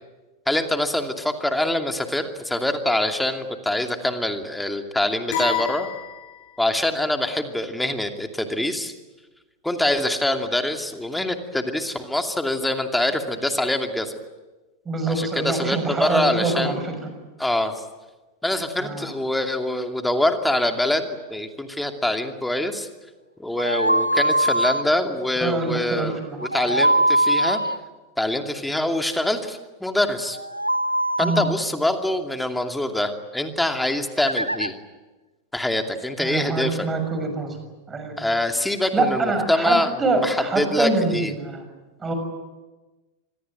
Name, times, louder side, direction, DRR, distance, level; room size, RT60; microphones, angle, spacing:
voice 1, 0.5-5.9 6.6-8.9 9.6-14.1 15.1-16.8 17.4-17.8 18.4-22.9 23.4-26.2 26.5-27.7 28.2-30.4 31.2-34.7 35.5-36.9 38.2-41.3, left 1 dB, 5° left, 6 dB, 2.6 m, -24 dB
sound 1, 5.3-6.7, left 6 dB, 50° left, 7.6 m, -29 dB
voice 2, 14.8-17.1 18.8-19.1 25.4-26.4 31.2-31.4 36.2-37.6 37.9-38.2 38.9-41.6 42.0-42.1, right 3 dB, 15° right, 6 dB, 6.2 m, -25 dB
sound 2, 23.6-24.8 26.4-27.8 30.3-31.5 34.3-34.7, right 1 dB, 90° right, 1.0 m, -22 dB
26.0 x 21.5 x 9.2 m, 1.2 s
figure-of-eight pair, 90°, 0 cm